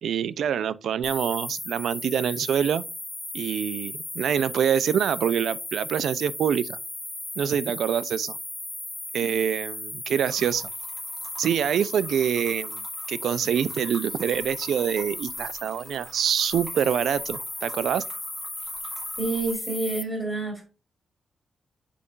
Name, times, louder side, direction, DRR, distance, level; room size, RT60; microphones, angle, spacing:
voice 1, 0.0-2.8 3.3-6.8 7.4-8.4 9.1-10.7 11.4-12.8 13.1-18.0, right 8 dB, 80° right, 0.5 m, -25 dB
sound 1, 1.0-20.0, left 1 dB, 10° left, 0.5 m, -36 dB
sound 2, 10.2-19.5, right 3 dB, 40° right, 3.7 m, -48 dB
voice 2, 19.2-20.6, right 3 dB, 10° right, 3.3 m, -28 dB
7.6 x 6.8 x 2.5 m
wide cardioid pair, 175°, 0 cm